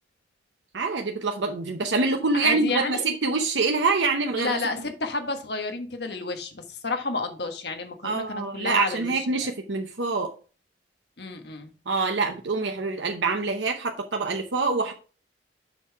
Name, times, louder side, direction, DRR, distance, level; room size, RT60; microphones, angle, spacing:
voice 1, 0.7-4.5 8.0-10.3 11.9-14.9, right 4 dB, 80° right, 0.8 m, -25 dB
voice 2, 2.3-3.1 4.4-9.3 11.2-11.7, left 3 dB, 60° left, 1.4 m, -31 dB
7.0 x 5.6 x 4.7 m
head